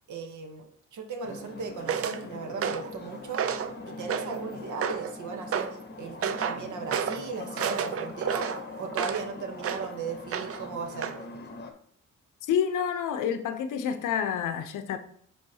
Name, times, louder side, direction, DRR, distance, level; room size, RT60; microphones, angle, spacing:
voice 1, 0.1-3.5 3.9-8.5 8.8-11.1, right 5 dB, 75° right, 1.0 m, -37 dB
sound 1, 1.2-11.7, left 3 dB, 35° left, 0.8 m, -42 dB
sound 2, 1.9-2.2 2.6-2.9 3.3-3.7 4.1-4.4 4.8-5.1 5.5-5.8 6.2-6.6 6.9-7.2 7.6-9.3 9.6-9.9 10.3-10.7 11.0-11.2, right 8 dB, 50° right, 0.5 m, -30 dB
voice 2, 12.5-15.0, left 8 dB, 85° left, 0.7 m, -28 dB
10.0 x 3.6 x 2.8 m
cardioid pair, 135°, 30 cm